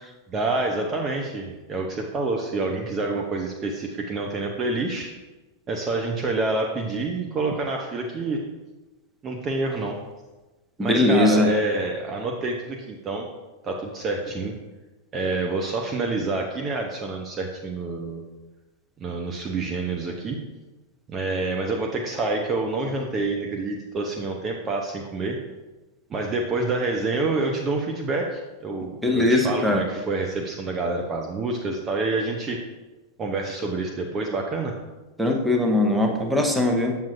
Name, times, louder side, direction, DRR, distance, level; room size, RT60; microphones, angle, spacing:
voice 1, 0.3-5.1 5.7-8.4 9.2-10.0 10.8-13.3 13.6-14.6 15.1-18.2 19.0-20.4 21.1-25.4 26.1-32.6 33.2-34.7, right 3 dB, 25° right, 1 dB, 0.6 m, -27 dB
voice 2, 10.8-11.5 29.0-29.8 35.2-37.0, left 2 dB, 5° right, 1 dB, 1.0 m, -20 dB
7.4 x 7.1 x 2.6 m, 1.1 s
figure-of-eight pair, 90°, 0 cm